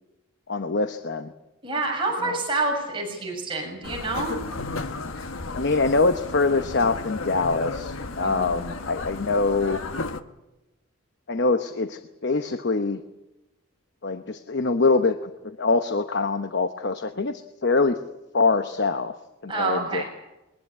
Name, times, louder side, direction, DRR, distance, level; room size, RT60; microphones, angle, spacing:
voice 1, 0.5-1.3 2.2-2.3 5.5-9.8 11.3-13.0 14.0-18.0 18.3-19.1 19.4-20.0, left 3 dB, 55° left, 9 dB, 0.9 m, -24 dB
voice 2, 1.6-4.4 8.2-8.6 19.5-20.0, right 3 dB, 25° right, 0 dB, 6.7 m, -27 dB
sound 1, 3.8-10.2, left 3 dB, 75° left, 1.2 m, -34 dB
22.0 x 20.5 x 8.6 m, 0.99 s
head